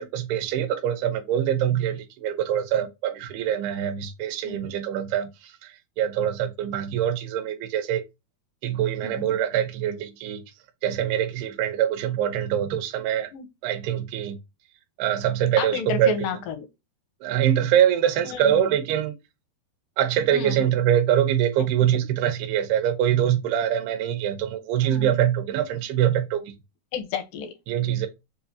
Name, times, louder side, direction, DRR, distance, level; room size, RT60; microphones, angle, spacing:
voice 1, 0.0-8.0 8.6-10.4 10.8-13.3 13.6-14.4 15.0-16.1 17.2-19.1 20.0-26.5 27.7-28.1, right 10 dB, 85° right, 2.7 m, -24 dB
voice 2, 8.8-9.4 13.3-13.5 15.6-16.7 18.2-18.6 20.3-20.7 24.8-25.2 26.9-27.5, left 6 dB, 80° left, 2.1 m, -32 dB
6.4 x 2.4 x 2.7 m
omnidirectional pair, 4.5 m